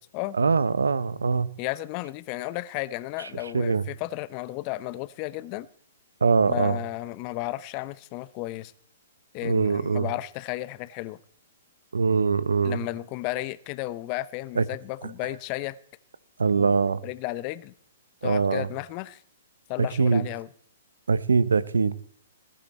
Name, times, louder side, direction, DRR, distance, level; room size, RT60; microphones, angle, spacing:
voice 1, 0.3-1.5 3.5-3.8 6.2-6.8 9.4-10.1 11.9-12.8 14.6-14.7 16.4-17.0 18.2-18.7 19.8-20.3 21.1-22.0, right 5 dB, 80° right, 1.0 m, -22 dB
voice 2, 1.6-5.7 6.5-8.7 9.3-11.2 12.6-15.8 16.6-16.8 17.0-17.7 18.2-19.2 19.7-20.5, left 17 dB, 35° left, 0.8 m, -33 dB
20.0 x 11.5 x 4.4 m
hypercardioid pair, 125°, 0 cm